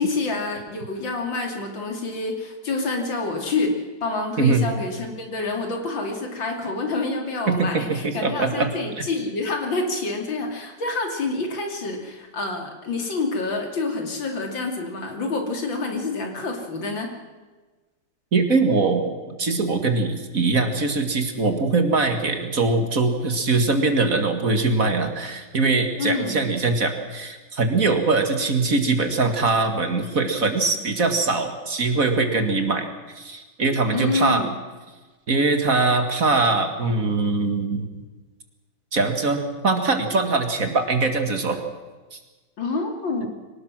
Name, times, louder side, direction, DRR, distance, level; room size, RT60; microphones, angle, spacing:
voice 1, 0.0-17.1 26.0-26.4 33.9-34.5 42.6-43.3, left 3 dB, 80° left, 2 dB, 3.6 m, -27 dB
voice 2, 7.5-8.7 18.3-19.1 19.4-32.9 33.2-34.4 35.3-37.9 38.9-41.6 42.1-42.2, right 3 dB, 45° right, 6 dB, 2.2 m, -22 dB
23.5 x 19.0 x 6.1 m, 1.3 s
omnidirectional pair, 2.1 m